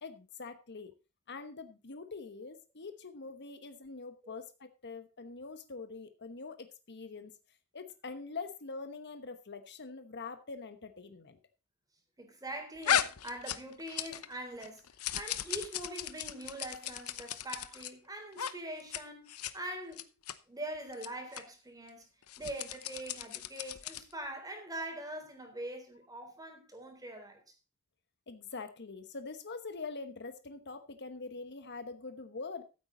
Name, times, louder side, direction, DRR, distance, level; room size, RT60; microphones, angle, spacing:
voice 1, 0.0-0.9 1.3-7.3 7.7-11.4 28.3-32.6, left 4 dB, 55° left, 1.1 m, -44 dB
voice 2, 12.2-14.8 15.1-20.0 20.5-22.1 22.4-27.5, right 1 dB, 15° right, 3.6 m, -43 dB
sound 1, 12.8-14.3 14.6-17.9 18.3-18.5 18.8-19.0 19.3-19.5 19.9-20.3 20.9-21.1 21.3-21.4 22.2-24.1, left 9 dB, 80° left, 0.9 m, -35 dB
14.5 x 8.5 x 3.9 m
head